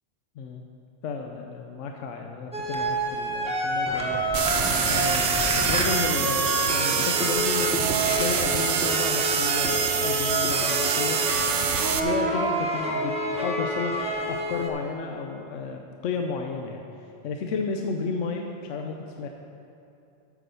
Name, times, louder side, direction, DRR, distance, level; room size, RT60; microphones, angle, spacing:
voice 1, 1.0-4.4 4.9-11.2 11.7-14.0 14.3-16.9 17.2-19.3, left 4 dB, 75° left, 3 dB, 1.0 m, -32 dB
sound 1, 2.5-14.7, right 1 dB, 5° right, 1.1 m, -28 dB
sound 2, 4.3-12.0, right 8 dB, 65° right, 0.8 m, -26 dB
9.4 x 6.0 x 6.7 m, 2.7 s
omnidirectional pair, 1.3 m